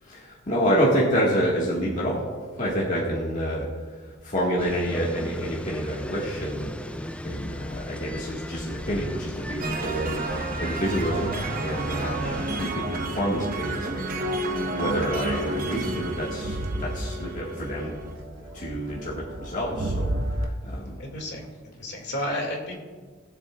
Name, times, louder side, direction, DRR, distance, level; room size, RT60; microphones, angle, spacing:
voice 1, 0.0-14.1 14.5-17.9 18.5-21.0, equal, 40° left, -5 dB, 1.7 m, -28 dB
sound 1, 4.6-12.7, left 1 dB, 5° left, 0.3 m, -37 dB
sound 2, 9.6-18.1, right 2 dB, 45° right, 0.9 m, -31 dB
Crowd, 9.7-20.5, right 1 dB, 85° right, 0.9 m, -36 dB
voice 2, 21.0-21.5 21.8-22.8, left 1 dB, 60° left, 1 dB, 2.2 m, -32 dB
20.0 x 7.5 x 2.4 m, 1.5 s
head